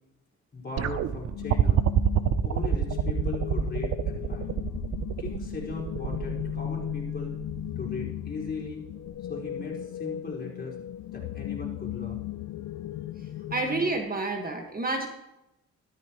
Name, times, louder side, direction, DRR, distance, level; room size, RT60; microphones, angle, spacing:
voice 1, 0.5-1.8 2.4-4.5 5.2-7.3 7.8-8.8 9.3-10.7 11.1-12.3, left 3 dB, 30° left, -3 dB, 4.9 m, -38 dB
sound 1, 0.8-7.9 9.1-9.2, right 9 dB, 55° right, 0.6 m, -27 dB
sound 2, 1.3-14.0, left 12 dB, 65° left, 0.6 m, -36 dB
voice 2, 13.5-15.1, right 2 dB, 30° right, 4 dB, 1.6 m, -29 dB
13.5 x 13.5 x 3.0 m, 0.91 s
cardioid pair, 90°, 30 cm